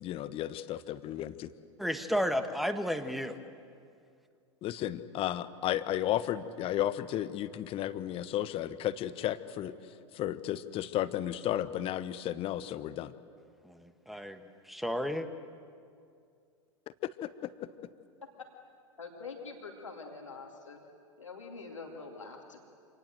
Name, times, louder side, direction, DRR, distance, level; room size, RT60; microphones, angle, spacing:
voice 1, 0.0-1.5 4.6-9.7 10.2-13.1 17.2-17.3, left 12 dB, 35° left, 13 dB, 1.1 m, -33 dB
voice 2, 1.8-3.4 13.6-14.4 14.7-15.3, equal, ahead, 9 dB, 1.4 m, -32 dB
voice 3, 19.0-20.9 21.2-22.6, left 4 dB, 85° left, 1 dB, 2.6 m, -45 dB
26.5 x 19.5 x 7.7 m, 2.3 s
figure-of-eight pair, 90°, 16 cm